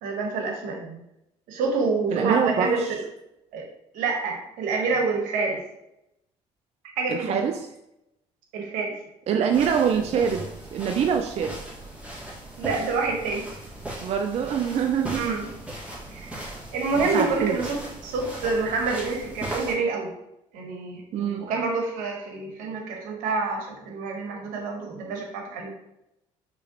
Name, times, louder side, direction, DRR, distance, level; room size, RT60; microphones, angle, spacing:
voice 1, 0.0-1.0 1.5-3.0 3.5-3.7 3.9-5.6 7.0-7.3 8.5-9.0 12.6-13.4 15.1-15.5 16.1-20.1 20.5-21.0 21.4-25.7, right 4 dB, 85° right, 1 dB, 1.1 m, -27 dB
voice 2, 2.1-2.9 7.1-7.7 9.3-11.6 14.0-15.2 17.0-17.6 21.1-21.5, right 7 dB, 50° right, 5 dB, 0.4 m, -25 dB
sound 1, 9.5-19.7, right 1 dB, 10° right, 1.6 m, -38 dB
5.5 x 3.0 x 2.8 m, 0.84 s
supercardioid pair, 85°, 14 cm